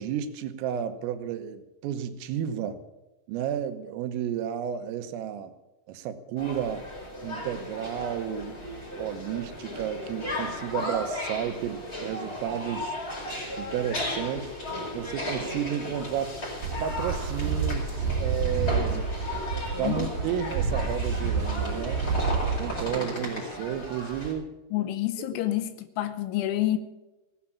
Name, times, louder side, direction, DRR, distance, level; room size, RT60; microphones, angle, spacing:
voice 1, 0.0-2.8 3.3-5.5 5.9-6.9 7.2-8.6 9.0-12.9 13.6-14.5 14.9-16.4 16.8-19.1 19.8-22.1 22.6-24.5 25.2-25.4, right 9 dB, 80° right, 10 dB, 3.7 m, -32 dB
sound 1, 6.4-24.3, left 1 dB, 20° left, 4.6 m, -35 dB
sound 2, 16.6-22.9, right 5 dB, 60° right, 2.8 m, -29 dB
voice 2, 19.7-20.1 24.7-26.8, left 14 dB, 75° left, 11 dB, 3.1 m, -28 dB
17.0 x 9.8 x 7.1 m, 1.1 s
omnidirectional pair, 5.9 m